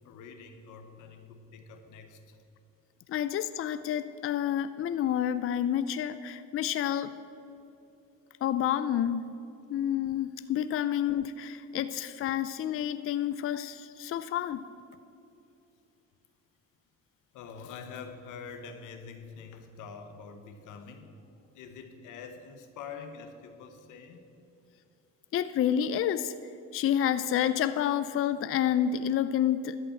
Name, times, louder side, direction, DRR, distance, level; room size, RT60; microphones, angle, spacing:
voice 1, 0.0-2.4 17.3-21.2 21.5-24.3, left 5 dB, 90° left, 7 dB, 1.1 m, -45 dB
voice 2, 3.1-7.1 8.4-9.3 9.7-14.7 25.3-26.3 26.7-29.8, left 10 dB, 45° left, 12 dB, 0.4 m, -29 dB
11.5 x 5.4 x 8.4 m, 2.7 s
cardioid pair, 90°, 30 cm